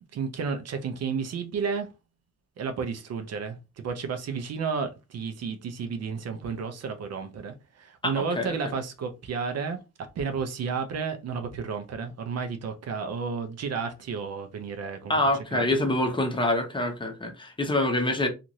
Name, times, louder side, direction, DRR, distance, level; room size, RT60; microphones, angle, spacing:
voice 1, 0.1-1.9 2.6-15.2 15.5-15.6, right 5 dB, 55° right, 0.6 m, -32 dB
voice 2, 8.0-8.6 15.1-18.3, left 1 dB, 15° left, 0.8 m, -26 dB
2.5 x 2.5 x 2.9 m
cardioid pair, 90°, 30 cm